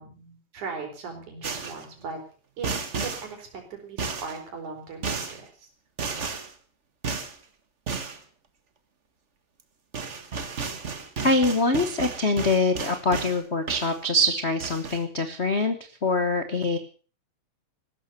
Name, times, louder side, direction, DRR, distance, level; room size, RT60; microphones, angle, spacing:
voice 1, 0.0-2.2 2.6-5.7, right 4 dB, 85° right, 4 dB, 5.7 m, -39 dB
sound 1, 1.4-1.9 2.6-3.3 4.0-4.4 5.0-5.4 6.0-6.5 7.0-7.4 7.9-8.2 9.6-9.7 9.9-13.4 13.7-14.3 14.6-15.0, right 5 dB, 35° right, 1.2 m, -33 dB
voice 2, 11.2-15.7 16.0-16.8, left 2 dB, 60° left, 8 dB, 0.6 m, -24 dB
16.0 x 13.0 x 6.8 m, 0.40 s
omnidirectional pair, 3.4 m